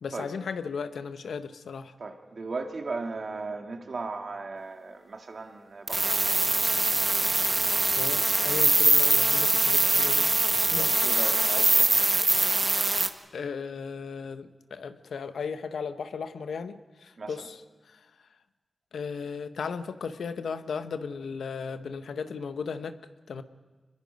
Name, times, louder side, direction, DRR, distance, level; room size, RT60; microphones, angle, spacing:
voice 1, 0.0-1.9 7.9-10.3 10.7-11.1 11.7-12.0 13.3-17.6 17.9-18.0 18.9-23.0 23.3-23.4, left 5 dB, 90° left, 10 dB, 0.8 m, -36 dB
voice 2, 2.0-6.4 10.8-12.1 17.2-17.5, right 3 dB, 65° right, 4 dB, 2.0 m, -37 dB
sound 1, 5.9-13.1, right 2 dB, 35° right, 1.4 m, -23 dB
26.0 x 21.5 x 5.3 m, 1.3 s
cardioid pair, 45°, 0 cm